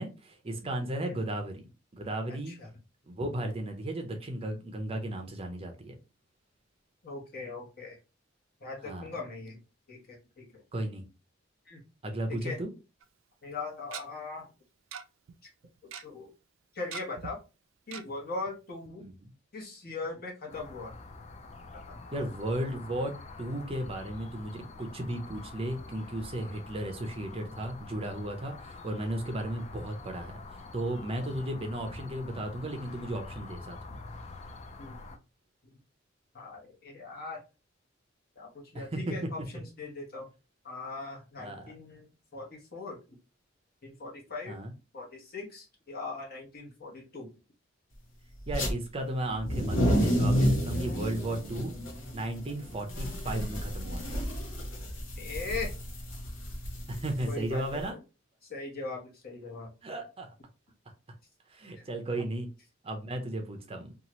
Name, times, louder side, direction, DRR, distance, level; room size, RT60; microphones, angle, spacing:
voice 1, 0.0-1.7 1.9-2.5 3.1-6.0 8.8-9.1 10.7-11.0 12.0-12.7 19.0-19.3 22.1-23.1 23.4-30.4 30.7-34.0 38.7-39.1 41.4-41.7 44.5-44.7 48.5-51.7 52.1-54.2 56.9-57.9 59.8-60.3 61.5-62.5 62.8-63.9, right 1 dB, 30° right, 0.5 m, -35 dB
voice 2, 0.6-1.2 2.3-2.7 7.0-8.0 8.6-9.6 9.9-10.6 11.7-11.8 12.3-12.6 13.4-14.5 15.9-16.3 16.7-17.4 17.9-19.1 19.5-20.9 21.7-22.0 31.2-31.3 34.8-35.0 35.7-35.8 36.3-37.4 38.4-40.3 40.6-43.0 43.8-44.6 44.9-47.3 50.7-51.4 55.2-55.7 57.3-58.0 58.5-59.7, left 3 dB, 50° left, 1.1 m, -40 dB
Tick-tock, 13.0-13.1 13.9-14.0 14.9-15.0 15.3-15.4 15.6-16.0 16.9-17.3 17.9-18.0 18.5-18.6 18.9-19.0, right 7 dB, 80° right, 0.4 m, -41 dB
sound 1, 20.5-35.2, left 3 dB, 35° left, 0.3 m, -46 dB
sound 2, 48.4-48.7 49.3-57.8, equal, 70° left, 0.9 m, -30 dB
2.8 x 2.4 x 2.9 m
head